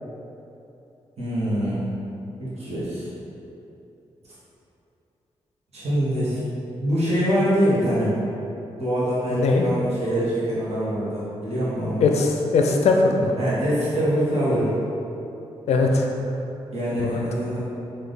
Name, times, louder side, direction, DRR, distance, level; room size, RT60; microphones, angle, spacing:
voice 1, 1.2-1.8 2.4-3.1 5.7-6.4 6.8-8.1 8.8-12.0 13.4-14.7 16.7-17.6, equal, 70° right, -9 dB, 1.1 m, -24 dB
voice 2, 9.3-9.6 12.0-13.3 15.7-16.1 17.0-17.3, left 3 dB, 75° left, 2 dB, 0.4 m, -20 dB
3.3 x 2.6 x 3.9 m, 2.9 s
supercardioid pair, 50°, 11 cm